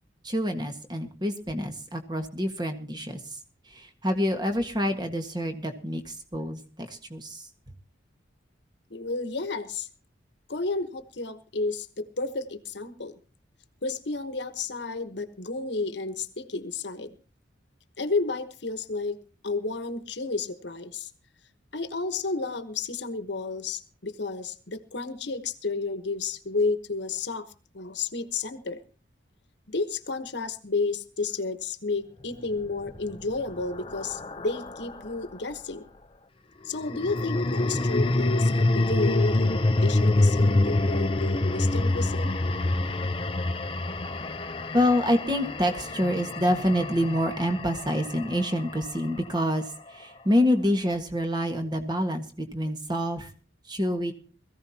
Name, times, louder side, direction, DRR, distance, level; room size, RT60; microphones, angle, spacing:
voice 1, 0.2-3.4 3.7-7.5 44.7-53.3 53.7-54.1, equal, 20° right, 6 dB, 1.6 m, -27 dB
voice 2, 8.9-9.9 10.5-13.1 13.8-17.2 18.0-19.2 19.4-21.1 21.7-27.5 27.7-28.8 29.7-35.8 36.6-42.4, left 3 dB, 65° left, 11 dB, 1.2 m, -31 dB
sound 1, 32.7-35.2 36.8-49.1, left 2 dB, 30° left, 0.6 m, -26 dB
21.0 x 15.0 x 2.9 m, 0.37 s
head